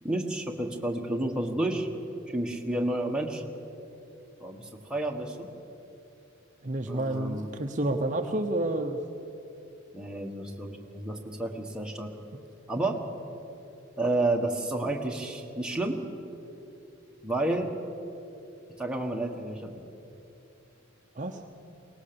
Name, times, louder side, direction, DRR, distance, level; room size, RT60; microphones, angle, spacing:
voice 1, 0.0-1.9 2.3-3.4 4.4-5.5 6.9-7.5 9.9-12.1 12.7-13.0 14.0-16.0 17.2-17.7 18.8-19.7, right 2 dB, 5° right, 0 dB, 1.5 m, -30 dB
voice 2, 6.6-9.0 21.2-21.4, right 1 dB, 40° right, 4 dB, 0.9 m, -29 dB
23.0 x 18.5 x 6.9 m, 2.9 s
head